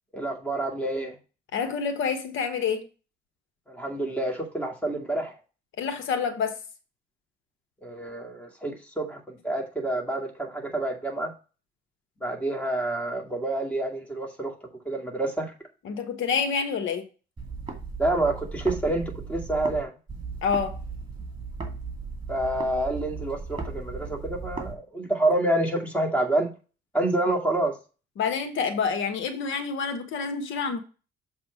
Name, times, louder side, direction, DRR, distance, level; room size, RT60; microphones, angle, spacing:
voice 1, 0.1-1.2 3.7-5.3 7.8-11.3 12.2-14.5 14.9-15.5 18.0-19.9 22.3-26.5 26.9-27.7, right 2 dB, 5° left, 2.3 m, -28 dB
voice 2, 1.5-2.8 5.8-6.6 15.8-17.0 20.4-20.8 28.2-30.8, left 6 dB, 75° left, 1.3 m, -27 dB
sound 1, 17.4-19.8 20.1-24.7, right 4 dB, 20° right, 2.5 m, -36 dB
7.2 x 3.6 x 6.2 m
cardioid pair, 90°, 20 cm